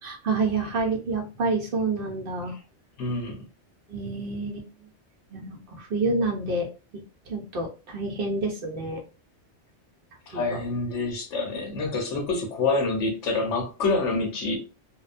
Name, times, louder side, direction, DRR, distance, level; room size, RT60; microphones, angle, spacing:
voice 1, 0.0-2.6 3.9-4.7 5.3-6.7 6.9-9.0 10.3-10.6 14.1-14.3, right 3 dB, 55° right, 0.7 m, -28 dB
voice 2, 3.0-3.4 10.3-14.6, left 3 dB, 85° left, 1.2 m, -27 dB
2.7 x 2.1 x 2.4 m
omnidirectional pair, 1.2 m